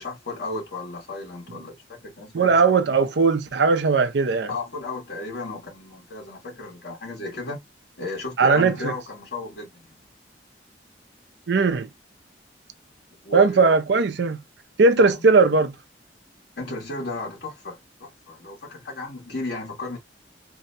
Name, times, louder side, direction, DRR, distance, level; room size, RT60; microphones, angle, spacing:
voice 1, 0.0-3.0 4.5-7.6 8.0-10.0 13.2-13.8 14.9-15.5 16.6-20.0, left 2 dB, 65° left, 1.2 m, -34 dB
voice 2, 2.3-4.5 8.4-8.9 11.5-11.9 13.3-14.4 14.8-15.7, right 4 dB, 70° right, 0.5 m, -18 dB
2.7 x 2.1 x 2.5 m
head